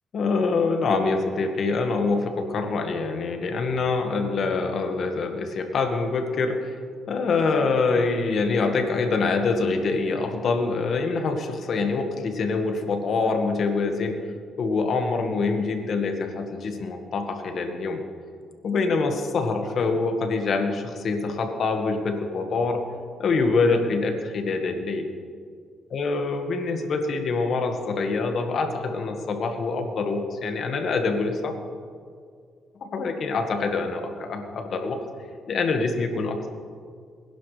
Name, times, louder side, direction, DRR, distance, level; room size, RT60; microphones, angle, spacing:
voice 1, 0.1-6.8 7.1-14.2 14.6-18.0 18.6-22.8 23.2-25.1 25.9-31.5 32.8-35.0 35.5-36.5, left 4 dB, 60° left, 5 dB, 1.7 m, -25 dB
21.0 x 11.5 x 3.4 m, 2.1 s
cardioid pair, 90°, 0 cm